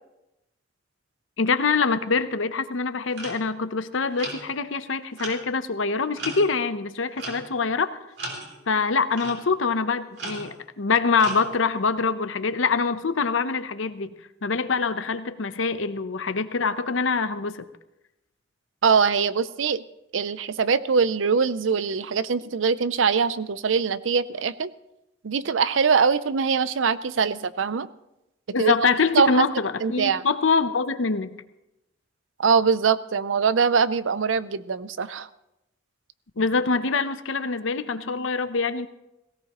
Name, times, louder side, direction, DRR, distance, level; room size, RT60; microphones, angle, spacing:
voice 1, 1.4-8.0 8.7-14.1 14.4-17.6 28.5-31.4 36.4-38.9, left 4 dB, 85° left, 11 dB, 0.8 m, -24 dB
sound 1, 3.2-3.4 4.2-4.6 5.2-5.4 6.1-6.7 7.2-7.6 8.2-8.6 9.2-9.4 10.2-10.6 11.2-11.6, right 2 dB, 60° right, 3.2 m, -36 dB
voice 2, 18.8-19.8 20.1-24.7 25.2-27.9 28.6-28.7 29.1-29.3 29.8-30.2 32.4-35.3, right 5 dB, 85° right, 15 dB, 0.6 m, -22 dB
17.5 x 16.5 x 3.0 m, 0.92 s
head